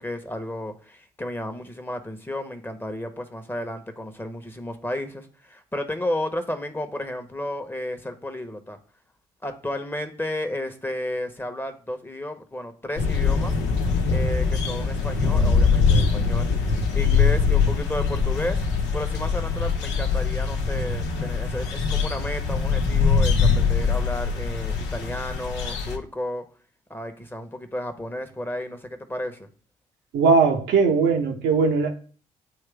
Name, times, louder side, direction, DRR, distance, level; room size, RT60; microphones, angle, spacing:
voice 1, 0.0-8.8 9.4-13.5 14.1-16.5 16.9-18.6 18.9-26.4 26.9-29.5, left 1 dB, 10° left, 1.0 m, -32 dB
sound 1, 13.0-26.0, left 5 dB, 70° left, 0.9 m, -23 dB
voice 2, 30.1-31.9, right 4 dB, 65° right, 1.0 m, -19 dB
8.9 x 3.2 x 3.4 m
hypercardioid pair, 45°, 19 cm